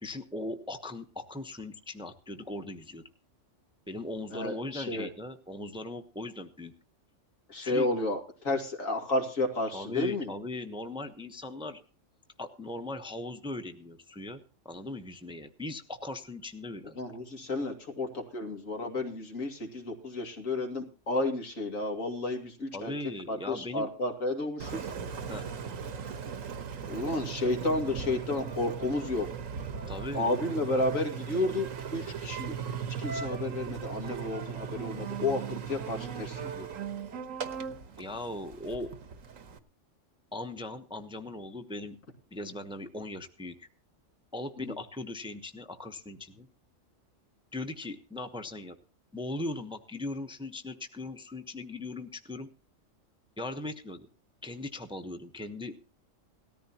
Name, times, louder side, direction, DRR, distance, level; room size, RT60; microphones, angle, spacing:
voice 1, 0.0-3.0 3.9-6.7 7.6-7.9 9.7-11.8 12.4-17.0 22.7-23.9 25.3-25.4 29.9-30.5 38.0-38.9 40.3-42.0 42.3-43.7 44.3-46.5 47.5-48.8 49.1-52.5 53.4-54.1 54.4-55.8, left 2 dB, 5° right, 7 dB, 0.9 m, -39 dB
voice 2, 4.3-5.1 7.5-10.3 17.0-22.9 23.3-24.8 26.9-29.3 30.1-36.7 44.6-44.8, left 2 dB, 80° left, 3 dB, 2.7 m, -32 dB
Engine, 24.6-39.6, right 7 dB, 80° right, 1.5 m, -38 dB
18.5 x 14.0 x 2.9 m, 0.36 s
omnidirectional pair, 1.4 m